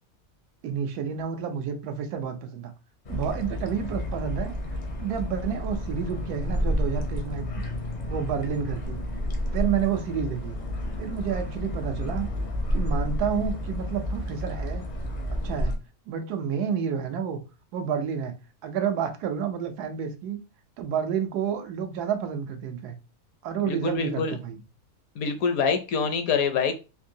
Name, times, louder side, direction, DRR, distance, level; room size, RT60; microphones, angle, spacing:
voice 1, 0.6-2.7 3.1-4.5 5.0-7.6 8.1-9.0 9.5-10.6 11.0-12.3 12.7-14.8 15.4-15.7 16.1-17.4 17.7-18.3 18.6-20.4 20.8-23.0 23.4-24.6, right 7 dB, 85° right, 1.2 m, -30 dB
sound 1, 3.0-15.7, left 1 dB, 50° left, 0.5 m, -30 dB
voice 2, 23.6-24.3 25.2-26.7, left 5 dB, 70° left, 1.0 m, -25 dB
3.6 x 2.6 x 2.6 m
omnidirectional pair, 1.6 m